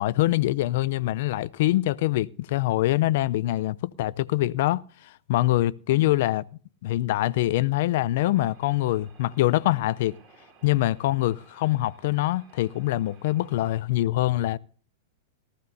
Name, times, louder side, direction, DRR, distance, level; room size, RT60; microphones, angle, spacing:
voice 1, 0.0-6.5 6.8-10.2 10.6-14.6, left 16 dB, 60° left, 0.5 m, -24 dB
sound 1, 8.2-13.8, right 5 dB, 40° right, 5.5 m, -57 dB
18.5 x 14.5 x 2.7 m
hypercardioid pair, 105°, 0 cm